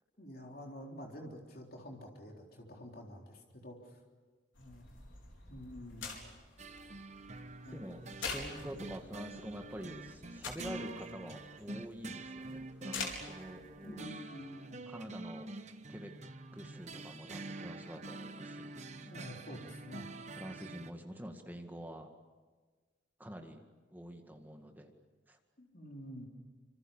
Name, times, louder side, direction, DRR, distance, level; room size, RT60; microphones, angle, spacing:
voice 1, 0.2-4.0 4.6-4.9 5.5-6.1 7.6-7.9 13.8-14.9 18.0-18.2 19.0-20.1 25.6-26.3, equal, 50° left, 1 dB, 3.8 m, -48 dB
sound 1, 4.5-13.9, left 4 dB, 75° left, 4.6 m, -47 dB
sound 2, 6.6-20.9, right 2 dB, 35° right, 1.1 m, -47 dB
voice 2, 7.7-14.2 14.9-15.5 15.9-16.1 16.5-18.7 20.4-22.1 23.2-23.6 23.9-24.9 25.3-25.4, equal, 10° right, 4 dB, 1.9 m, -46 dB
26.5 x 26.0 x 7.3 m, 1.4 s
head